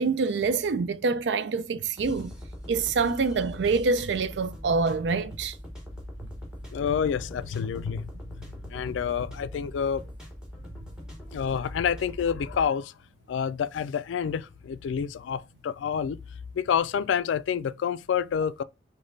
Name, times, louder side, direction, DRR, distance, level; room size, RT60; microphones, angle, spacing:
voice 1, 0.0-2.3 2.7-5.6 6.2-6.3, right 4 dB, 70° right, 0.4 m, -26 dB
sound 1, 2.0-12.7, equal, 5° right, 1.3 m, -42 dB
voice 2, 6.7-10.0 11.3-12.9 13.3-16.2 16.5-18.6, left 7 dB, 85° left, 0.3 m, -28 dB
5.1 x 2.2 x 3.9 m
head